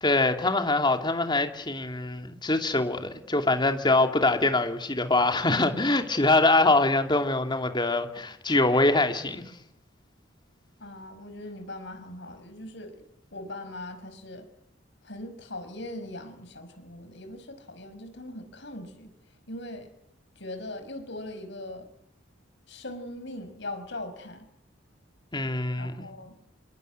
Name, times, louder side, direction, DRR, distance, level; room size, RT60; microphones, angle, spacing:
voice 1, 0.0-9.4 25.3-26.0, left 2 dB, 25° left, 2.7 m, -24 dB
voice 2, 10.8-13.0 13.3-14.5 15.0-19.1 19.5-19.9 20.4-21.9 22.7-24.5 25.7-26.4, left 1 dB, 65° left, 5.4 m, -40 dB
27.5 x 22.5 x 9.5 m
head